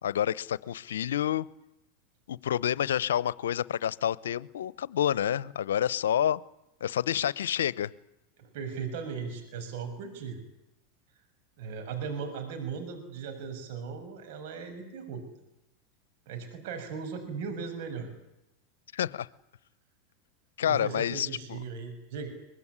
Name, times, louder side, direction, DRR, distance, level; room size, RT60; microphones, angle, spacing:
voice 1, 0.0-1.5 2.3-6.4 6.8-7.9 18.9-19.3 20.6-21.6, left 10 dB, 85° left, 21 dB, 0.9 m, -28 dB
voice 2, 8.4-10.4 11.6-15.2 16.3-18.1 20.7-22.3, right 6 dB, 65° right, 6 dB, 6.8 m, -37 dB
23.5 x 21.0 x 9.9 m, 0.88 s
hypercardioid pair, 105°, 0 cm